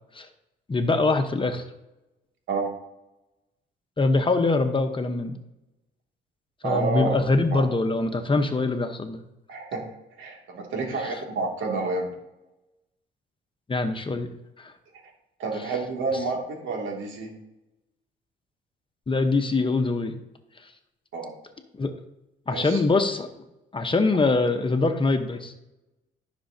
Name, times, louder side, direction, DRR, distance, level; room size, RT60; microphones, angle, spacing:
voice 1, 0.7-1.6 4.0-5.4 6.6-9.2 13.7-14.3 14.6-14.7 19.1-20.2 21.8-21.9 22.5-23.3 23.7-25.5, left 3 dB, 25° left, 7 dB, 1.0 m, -23 dB
voice 2, 6.6-7.2 7.5-7.7 9.5-9.8 10.2-12.1 15.4-17.3 21.1-21.3 22.5-22.8, right 3 dB, 80° right, 0 dB, 2.5 m, -29 dB
14.0 x 6.2 x 2.8 m, 0.93 s
cardioid pair, 90°, 20 cm